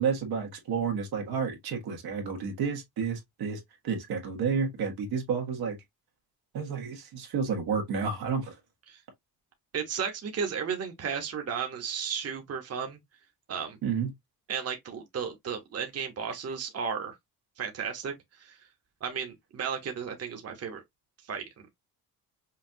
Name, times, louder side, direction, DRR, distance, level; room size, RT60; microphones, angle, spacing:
voice 1, 0.0-5.8 6.5-8.5 13.8-14.1, right 6 dB, 85° right, 1.6 m, -30 dB
voice 2, 9.7-13.0 13.5-13.8 14.5-17.2 17.6-18.6 19.0-20.8 21.3-21.7, right 7 dB, 40° right, 1.0 m, -34 dB
5.7 x 2.3 x 2.7 m
cardioid pair, 115°, 37 cm